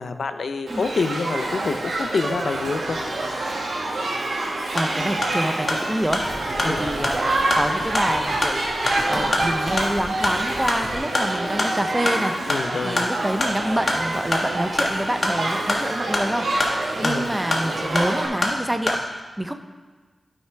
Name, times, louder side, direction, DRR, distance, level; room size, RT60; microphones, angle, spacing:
voice 1, 0.0-3.0 6.6-6.8 12.5-13.0 17.0-17.3, left 4 dB, 75° left, 9 dB, 0.5 m, -27 dB
Shout / Human group actions, 0.7-18.3, right 2 dB, 90° right, 1.4 m, -27 dB
sound 1, 4.6-19.0, left 1 dB, 40° left, 1.3 m, -27 dB
voice 2, 4.7-8.6 9.1-19.0 19.4-19.6, right 1 dB, 10° right, 7 dB, 0.5 m, -27 dB
sound 2, 6.0-11.0, left 1 dB, 55° left, 1.8 m, -36 dB
12.5 x 5.6 x 3.4 m, 1.4 s
wide cardioid pair, 110°, 0 cm